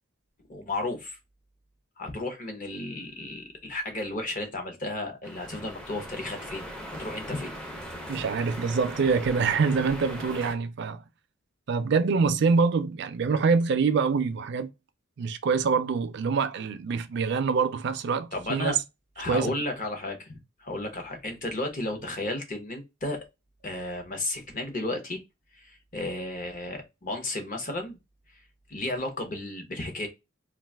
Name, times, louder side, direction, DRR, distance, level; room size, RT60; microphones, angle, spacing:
voice 1, 0.5-1.2 2.0-6.7 7.0-7.6 18.3-18.8 19.2-23.3 23.6-25.2 25.6-28.0 28.7-30.1, left 2 dB, 40° left, 0.7 m, -33 dB
sound 1, 5.2-10.5, equal, 5° left, 0.4 m, -39 dB
voice 2, 8.1-11.0 11.7-14.7 15.2-18.8 19.3-19.5, right 5 dB, 55° right, 0.4 m, -25 dB
2.4 x 2.3 x 3.4 m
head